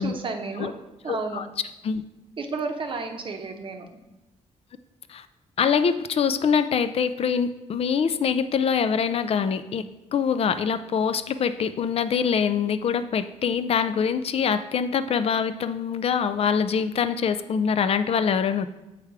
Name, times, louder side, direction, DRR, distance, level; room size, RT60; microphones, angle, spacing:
voice 1, 0.0-1.4 2.4-3.9, right 4 dB, 40° right, 4 dB, 0.8 m, -32 dB
voice 2, 1.1-1.4 1.8-2.0 5.1-5.3 5.6-9.8 10.1-18.7, left 6 dB, 50° left, 11 dB, 0.4 m, -24 dB
7.8 x 3.3 x 4.7 m, 0.98 s
cardioid pair, 115°, 13 cm